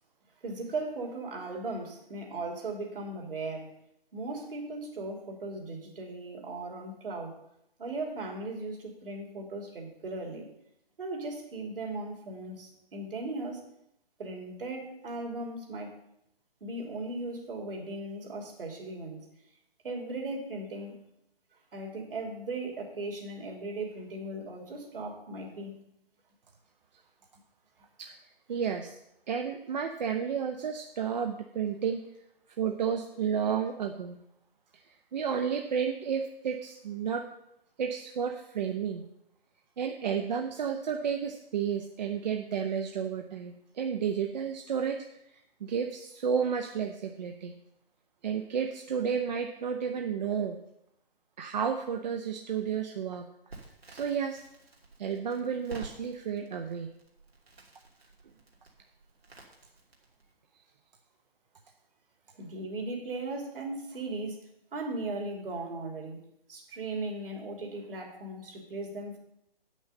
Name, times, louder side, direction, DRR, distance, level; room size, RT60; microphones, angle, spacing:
voice 1, 0.4-3.7 4.1-7.4 7.8-10.5 11.0-13.6 14.2-16.0 16.6-19.3 19.8-21.0 21.7-25.8 62.4-64.4 64.7-69.2, right 2 dB, 65° right, 1 dB, 3.1 m, -37 dB
voice 2, 28.5-29.0 29.3-32.0 32.6-34.2 34.9-37.2 37.8-39.0 39.8-45.0 45.6-47.5 48.2-50.6 51.4-53.3 53.9-54.4 55.0-56.9, right 7 dB, 45° right, 4 dB, 0.8 m, -32 dB
Crackle, 53.5-60.3, right 3 dB, 80° right, 2.9 m, -51 dB
8.7 x 6.4 x 6.8 m, 0.80 s
figure-of-eight pair, 135°, 30 cm